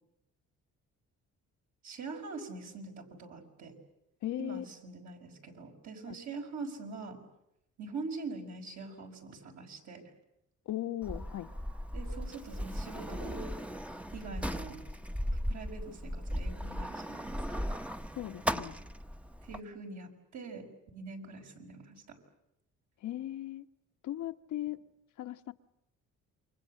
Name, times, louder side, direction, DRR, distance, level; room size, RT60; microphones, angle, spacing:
voice 1, 1.8-3.8 4.4-7.2 7.8-10.0 11.9-13.6 14.1-14.8 15.5-17.6 19.5-20.6 20.9-22.2, right 4 dB, 65° right, 2 dB, 5.9 m, -43 dB
voice 2, 4.2-4.6 6.1-6.2 10.7-11.5 18.2-18.8 23.0-23.7 24.0-24.8 25.2-25.5, left 13 dB, 75° left, 7 dB, 1.2 m, -37 dB
Sliding door, 11.0-19.6, equal, 5° right, 1.0 m, -37 dB
28.5 x 24.5 x 7.7 m, 0.86 s
cardioid pair, 90°, 30 cm